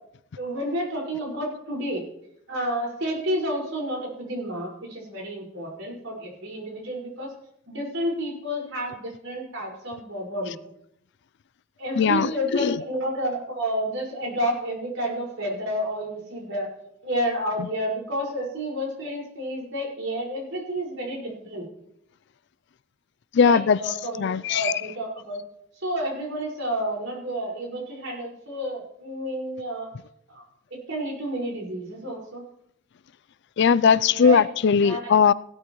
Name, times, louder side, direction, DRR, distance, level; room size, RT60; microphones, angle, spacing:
voice 1, 0.4-2.0 2.5-7.3 7.7-10.6 11.8-16.7 17.0-21.7 23.4-25.4 25.8-29.9 30.3-30.4 30.9-32.4 34.1-34.4 34.8-35.2, equal, 75° right, 5.4 m, -30 dB
voice 2, 12.0-12.8 17.6-17.7 23.3-23.8 24.2-24.7 33.6-35.3, left 6 dB, 60° left, 0.4 m, -19 dB
16.5 x 12.5 x 3.1 m
head